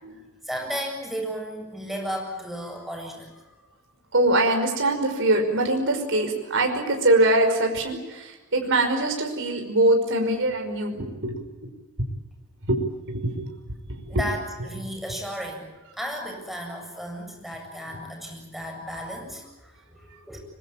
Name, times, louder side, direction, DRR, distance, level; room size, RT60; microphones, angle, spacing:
voice 1, 0.1-3.4 14.1-15.7 15.9-20.4, equal, ahead, 2 dB, 7.7 m, -34 dB
voice 2, 4.1-11.4 12.7-12.8 13.1-13.5 14.1-14.2, right 1 dB, 60° right, 3 dB, 5.5 m, -23 dB
25.0 x 23.0 x 9.0 m, 1.1 s
head